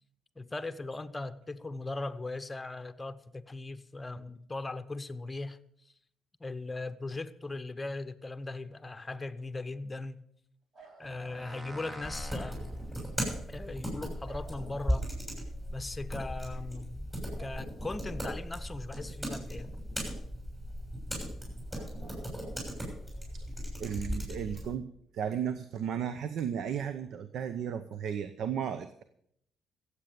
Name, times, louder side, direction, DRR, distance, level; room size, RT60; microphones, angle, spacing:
voice 1, 0.4-5.6 6.4-10.2 11.0-12.7 13.5-15.1 15.7-17.1 17.4-19.8, left 2 dB, 20° left, 0.8 m, -39 dB
sound 1, 10.7-12.2 14.2-15.9 17.4-19.3 21.7-23.4 25.5-25.6, right 3 dB, 55° right, 4.6 m, -57 dB
sound 2, 11.0-15.7, right 2 dB, 35° right, 2.2 m, -49 dB
sound 3, 12.0-24.8, equal, 10° right, 6.6 m, -37 dB
voice 2, 23.8-24.9 25.1-29.0, right 8 dB, 70° right, 0.8 m, -34 dB
15.0 x 8.4 x 6.8 m
cardioid pair, 90°, 0 cm